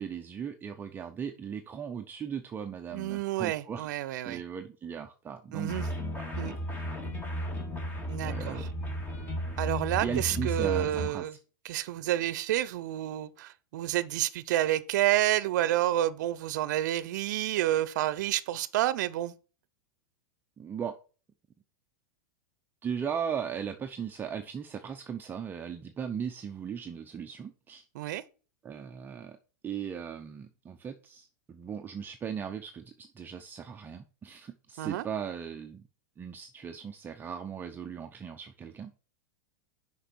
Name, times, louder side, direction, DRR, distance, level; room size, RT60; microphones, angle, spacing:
voice 1, 0.0-3.9 4.2-5.9 6.1-6.3 8.2-8.7 10.0-11.3 20.6-21.0 22.8-27.8 28.6-29.4 29.6-35.9 36.2-38.9, right 7 dB, 20° right, 0.6 m, -38 dB
voice 2, 2.9-4.4 5.5-5.8 6.4-6.5 8.1-8.7 9.6-11.3 11.6-19.3 27.9-28.2 34.8-35.1, right 14 dB, 70° right, 0.7 m, -29 dB
sound 1, 5.7-11.1, equal, 20° left, 2.1 m, -34 dB
6.6 x 5.4 x 6.2 m
supercardioid pair, 135°, 10 cm